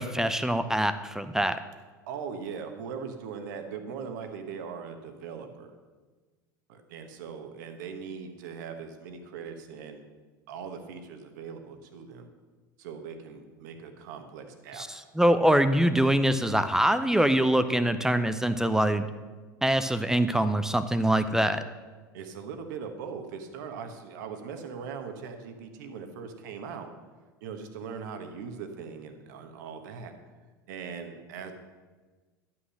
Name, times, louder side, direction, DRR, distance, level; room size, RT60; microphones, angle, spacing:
voice 1, 0.0-1.6 14.8-14.9 15.2-19.1 19.6-21.6, right 1 dB, 5° right, 11 dB, 0.6 m, -24 dB
voice 2, 2.1-5.7 6.7-10.0 10.5-12.3 12.8-14.8 22.1-26.9 27.4-30.1 30.7-31.5, right 6 dB, 65° right, 7 dB, 1.3 m, -40 dB
11.0 x 6.0 x 6.3 m, 1.3 s
hypercardioid pair, 80°, 11 cm